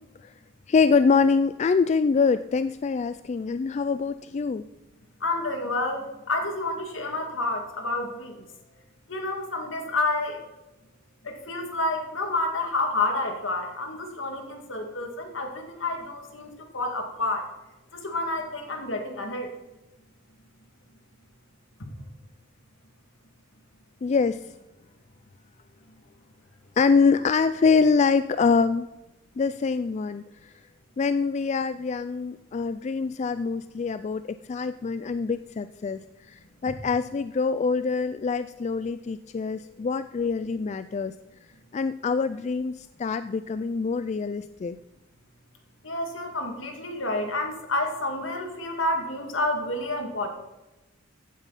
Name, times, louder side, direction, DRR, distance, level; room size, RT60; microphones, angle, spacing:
voice 1, 0.7-4.6 24.0-24.5 26.8-28.9 29.4-30.5 31.0-41.1 41.7-44.8, left 5 dB, 35° left, 12 dB, 0.3 m, -25 dB
voice 2, 5.2-8.4 9.1-10.4 11.2-17.5 17.9-19.5 21.8-21.9 45.8-50.3, left 2 dB, 70° left, 4 dB, 2.3 m, -29 dB
15.0 x 9.3 x 4.1 m, 1.0 s
head